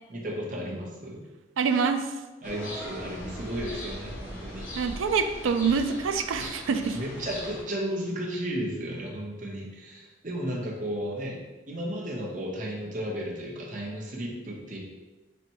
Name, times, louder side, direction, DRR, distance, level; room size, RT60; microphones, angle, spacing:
voice 1, 0.1-1.2 2.4-4.7 6.9-14.8, equal, 40° right, -2 dB, 0.8 m, -34 dB
voice 2, 1.6-2.1 4.8-7.0, right 5 dB, 85° right, 8 dB, 0.4 m, -26 dB
sound 1, 2.4-7.6, equal, 85° left, 1.4 m, -39 dB
4.2 x 2.2 x 4.4 m, 1.1 s
head